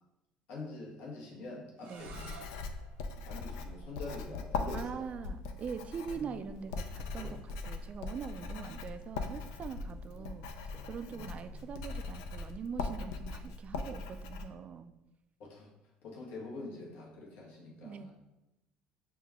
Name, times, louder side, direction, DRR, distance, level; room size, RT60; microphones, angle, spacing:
voice 1, 0.5-2.3 3.2-5.1 6.1-6.2 10.1-10.2 11.1-11.3 15.4-15.7 16.0-18.1, left 2 dB, 65° left, -3 dB, 1.0 m, -45 dB
sound 1, 1.8-7.5, right 4 dB, 75° right, 0.7 m, -57 dB
Writing, 2.0-14.4, left 4 dB, 85° left, 0.4 m, -40 dB
voice 2, 4.7-14.9 17.8-18.1, right 6 dB, 40° right, 10 dB, 0.3 m, -43 dB
sound 2, 6.1-12.0, left 1 dB, 10° right, 0.7 m, -58 dB
5.7 x 2.3 x 3.5 m, 0.92 s
supercardioid pair, 85°, 3 cm